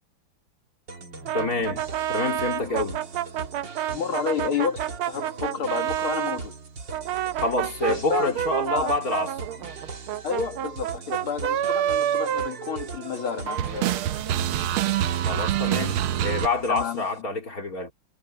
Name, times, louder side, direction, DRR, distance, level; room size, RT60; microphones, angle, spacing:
sound 1, 0.9-17.2, right 4 dB, 55° right, 3.1 m, -40 dB
voice 1, 1.3-3.0 7.4-9.3 15.3-17.9, left 2 dB, 40° left, 3.6 m, -27 dB
sound 2, 1.3-6.4 6.9-13.2 13.5-16.5, right 11 dB, 80° right, 1.6 m, -27 dB
voice 2, 3.9-6.5 7.9-8.4 8.7-8.9 10.2-14.0 16.7-17.0, left 7 dB, 75° left, 2.6 m, -30 dB
omnidirectional pair, 2.3 m